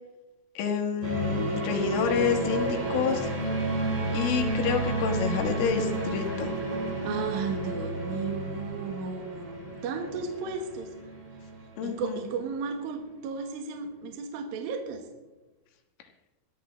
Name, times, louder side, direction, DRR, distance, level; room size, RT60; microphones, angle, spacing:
voice 1, 0.6-3.3 4.1-6.5 11.8-12.2, left 7 dB, 75° left, 4 dB, 4.1 m, -28 dB
sound 1, 1.0-12.4, right 2 dB, 35° right, 7.5 m, -31 dB
voice 2, 7.0-10.9 11.8-15.0, right 5 dB, 65° right, 3 dB, 2.4 m, -34 dB
23.0 x 14.0 x 3.2 m, 1.1 s
omnidirectional pair, 5.9 m